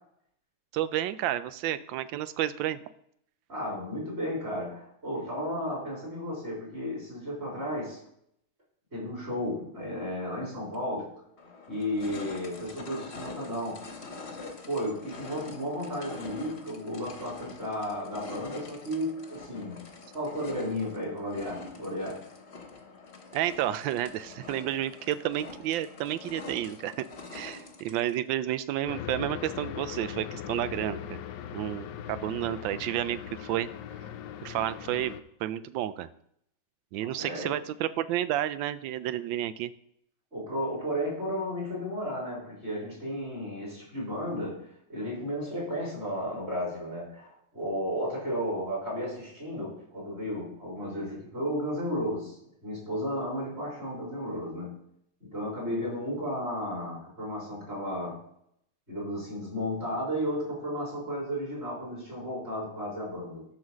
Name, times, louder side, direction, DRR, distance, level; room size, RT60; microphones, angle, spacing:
voice 1, 0.7-2.8 23.3-27.1 27.3-31.2 31.5-33.7 34.4-35.1 35.4-36.1 36.9-39.7, right 12 dB, 85° right, 14 dB, 1.3 m, -31 dB
voice 2, 3.5-8.0 8.9-11.1 11.7-13.8 14.7-19.8 20.1-22.2 37.0-37.6 40.3-54.8 55.2-58.2 58.9-63.5, equal, 35° right, -5 dB, 4.3 m, -33 dB
sound 1, 10.7-10.8 11.4-28.2, left 3 dB, 40° left, 1.2 m, -44 dB
sound 2, 28.9-35.2, left 10 dB, 75° left, 1.2 m, -39 dB
11.5 x 4.0 x 6.3 m, 0.72 s
omnidirectional pair, 2.0 m